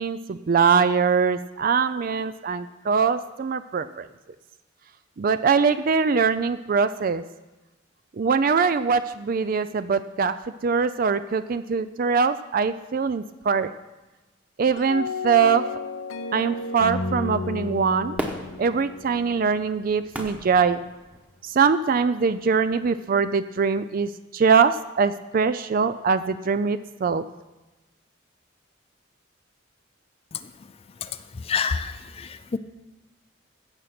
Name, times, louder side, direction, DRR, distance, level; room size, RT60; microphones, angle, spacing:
voice 1, 0.0-4.1 5.2-7.2 8.2-10.4 10.6-13.7 14.6-15.7 16.3-18.2 18.6-20.8 21.4-27.2, right 5 dB, 45° right, 12 dB, 0.4 m, -22 dB
sound 1, 14.8-19.9, left 3 dB, 90° left, 0.8 m, -32 dB
Fireworks, 18.2-21.5 22.1-22.2, equal, 5° right, 1.1 m, -36 dB
voice 2, 31.5-32.6, left 6 dB, 30° left, 11 dB, 0.4 m, -27 dB
16.0 x 6.5 x 5.9 m, 1.1 s
head